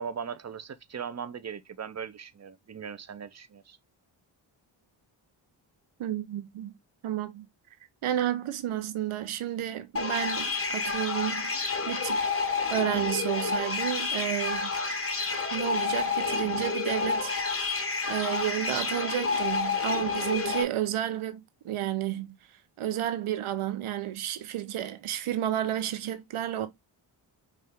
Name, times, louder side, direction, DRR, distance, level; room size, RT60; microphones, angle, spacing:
voice 1, 0.0-3.8, right 7 dB, 35° right, 0.7 m, -39 dB
voice 2, 6.0-6.7 7.0-7.5 8.0-12.2 12.7-14.7 15.5-17.7 18.1-22.3 22.8-26.7, right 12 dB, 80° right, 1.0 m, -31 dB
sound 1, 10.0-20.6, left 4 dB, 30° left, 1.2 m, -29 dB
5.4 x 2.7 x 3.6 m
cardioid pair, 50°, 49 cm